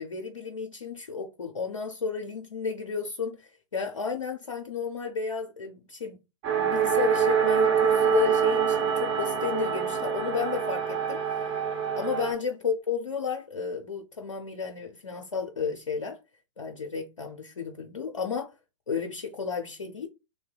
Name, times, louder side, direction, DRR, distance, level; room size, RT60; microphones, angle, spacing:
voice 1, 0.0-6.2 6.6-11.4 12.0-16.2 16.6-18.5 18.9-20.1, left 5 dB, 85° left, 0.5 m, -32 dB
sound 1, 6.4-12.3, right 7 dB, 35° right, 0.9 m, -25 dB
3.3 x 2.7 x 2.2 m
figure-of-eight pair, 110°, 16 cm